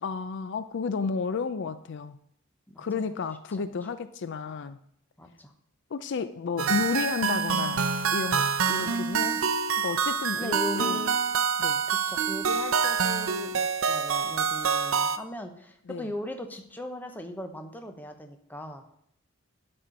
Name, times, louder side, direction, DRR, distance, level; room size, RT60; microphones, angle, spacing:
voice 1, 0.0-2.2 2.8-4.8 5.9-7.8 8.1-9.4 9.8-11.0 11.6-11.8 15.9-16.1, left 5 dB, 60° left, 12 dB, 0.4 m, -32 dB
voice 2, 2.7-3.1 3.5-3.7 5.2-5.5 8.8-9.1 10.3-11.2 11.9-18.8, equal, 10° left, 5 dB, 0.9 m, -39 dB
sound 1, 6.6-15.2, right 6 dB, 75° right, 0.6 m, -26 dB
12.0 x 4.4 x 5.1 m, 0.73 s
head